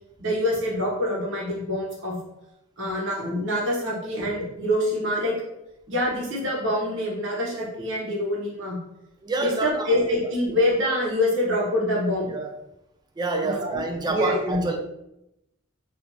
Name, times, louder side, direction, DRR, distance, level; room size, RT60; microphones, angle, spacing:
voice 1, 0.2-2.1 2.8-5.3 5.9-8.8 9.4-12.3 13.4-14.6, left 1 dB, 65° right, -4 dB, 1.2 m, -25 dB
voice 2, 9.2-10.0 12.3-12.5 13.2-14.8, right 3 dB, 20° right, 3 dB, 0.4 m, -27 dB
3.4 x 2.5 x 2.9 m, 0.87 s
head